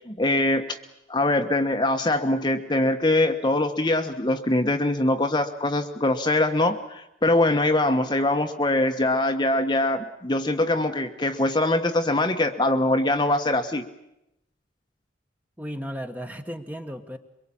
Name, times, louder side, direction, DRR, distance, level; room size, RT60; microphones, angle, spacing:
voice 1, 0.1-0.8 1.1-13.9, left 2 dB, 25° left, 6 dB, 1.2 m, -23 dB
voice 2, 15.6-17.2, equal, 10° right, 6 dB, 1.5 m, -35 dB
24.0 x 23.0 x 8.7 m, 0.85 s
head